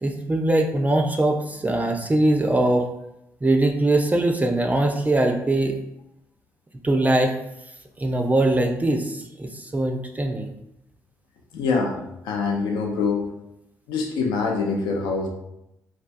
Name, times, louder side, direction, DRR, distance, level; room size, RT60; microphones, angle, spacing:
voice 1, 0.0-2.9 3.4-5.8 6.8-7.3 8.0-10.5, right 1 dB, 20° right, 3 dB, 0.4 m, -21 dB
voice 2, 11.5-12.0 12.2-13.3 13.9-15.3, left 4 dB, 65° left, 1 dB, 0.5 m, -24 dB
3.3 x 2.2 x 2.5 m, 0.83 s
figure-of-eight pair, 40°, 8 cm